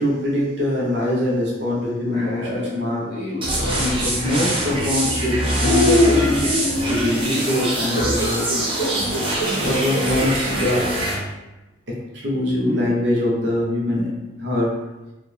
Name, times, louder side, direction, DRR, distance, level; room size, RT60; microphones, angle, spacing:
voice 1, 0.0-3.0 3.8-6.5 6.8-8.6 9.6-10.9 11.9-14.1 14.4-14.7, left 1 dB, 60° right, -3 dB, 1.0 m, -23 dB
sound 1, 2.0-3.9 4.7-5.1 5.6-10.3 10.9-11.0 12.6-12.9, left 1 dB, 45° left, 1.4 m, -24 dB
sound 2, 3.4-11.2, right 1 dB, 25° right, 0.8 m, -24 dB
4.6 x 2.6 x 3.4 m, 1.0 s
head